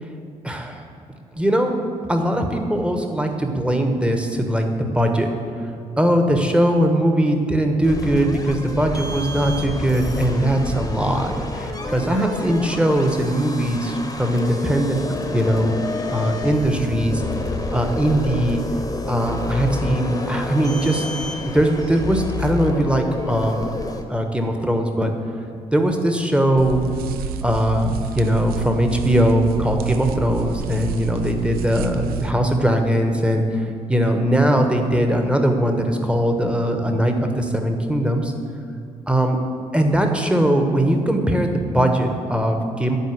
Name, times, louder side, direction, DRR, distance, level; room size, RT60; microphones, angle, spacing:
voice 1, 0.4-0.8 1.3-1.8 2.1-5.3 6.0-15.0 15.3-15.7 16.1-17.2 17.7-18.6 19.1-21.1 21.4-23.7 24.1-25.1 25.7-26.8 27.4-38.3 39.1-39.4 39.7-43.0, right 1 dB, 5° right, 4 dB, 1.2 m, -20 dB
sound 1, 7.8-24.0, left 2 dB, 20° left, 1.1 m, -29 dB
sound 2, 26.6-32.3, right 7 dB, 55° right, 0.5 m, -29 dB
9.3 x 4.6 x 7.7 m, 2.6 s
figure-of-eight pair, 45°, 18 cm